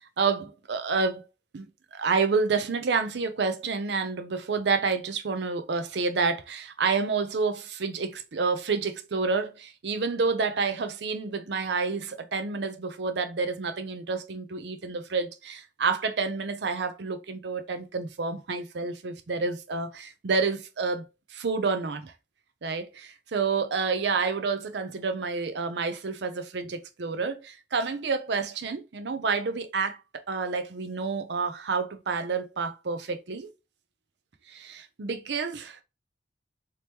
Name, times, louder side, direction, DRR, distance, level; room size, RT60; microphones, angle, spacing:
voice 1, 0.2-1.2 1.5-1.7 1.9-21.0 21.3-22.1 22.6-33.5 34.5-35.8, right 4 dB, 65° right, 0.5 m, -29 dB
3.4 x 2.9 x 2.8 m
head